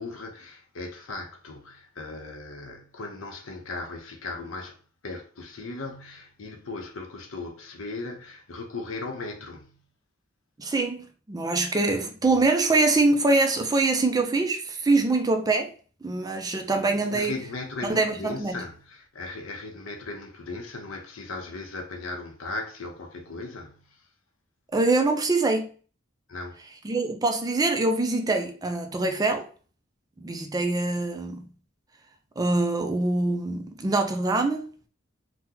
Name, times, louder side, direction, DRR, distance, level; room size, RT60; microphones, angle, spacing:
voice 1, 0.0-9.8 16.9-24.0 26.3-26.6, left 3 dB, 85° left, 0.7 m, -37 dB
voice 2, 10.6-15.7 16.0-17.4 17.8-18.6 24.7-25.7 26.8-29.5 30.2-31.5 32.4-34.7, right 3 dB, 20° right, 0.4 m, -24 dB
2.8 x 2.1 x 3.7 m
head